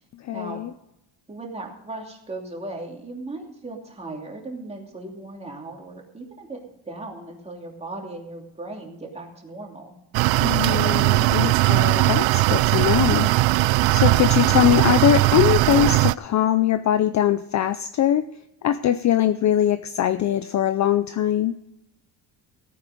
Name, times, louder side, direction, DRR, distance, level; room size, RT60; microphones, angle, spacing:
voice 1, 0.2-0.7 10.4-13.6 13.9-18.3 18.6-21.5, left 11 dB, 40° left, 12 dB, 0.5 m, -22 dB
voice 2, 1.3-9.9, right 2 dB, 15° right, 0 dB, 2.9 m, -37 dB
sound 1, 10.1-16.1, right 19 dB, 75° right, 0.5 m, -19 dB
16.5 x 9.6 x 5.3 m, 0.84 s
cardioid pair, 150°, 46 cm